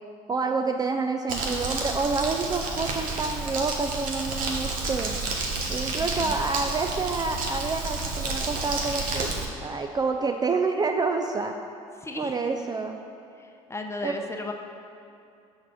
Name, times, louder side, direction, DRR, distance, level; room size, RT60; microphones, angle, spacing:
voice 1, 0.3-5.2 5.7-9.3 9.6-11.5 12.2-13.0 14.0-14.2, right 4 dB, 25° right, 4 dB, 0.4 m, -28 dB
Crumpling crinkling, 1.3-9.5, right 3 dB, 60° right, 1.1 m, -30 dB
voice 2, 12.0-12.4 13.4-14.5, left 3 dB, 15° left, 3 dB, 0.8 m, -35 dB
5.9 x 4.2 x 6.2 m, 2.5 s
hypercardioid pair, 70°, 16 cm